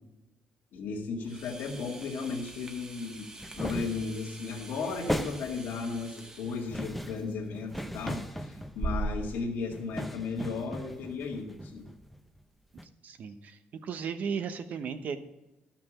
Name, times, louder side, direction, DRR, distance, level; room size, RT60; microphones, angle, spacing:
voice 1, 0.7-3.3 3.6-11.9, left 4 dB, 75° left, -2 dB, 2.0 m, -35 dB
sound 1, 1.2-9.4, right 2 dB, 20° right, 1.0 m, -41 dB
sound 2, 3.4-4.2 4.6-5.8 6.5-9.2 9.7-12.4 12.8-12.9, equal, ahead, 0.6 m, -38 dB
voice 2, 13.0-15.2, right 6 dB, 55° right, 9 dB, 1.0 m, -35 dB
13.0 x 5.9 x 6.1 m, 0.99 s
cardioid pair, 120°, 3 cm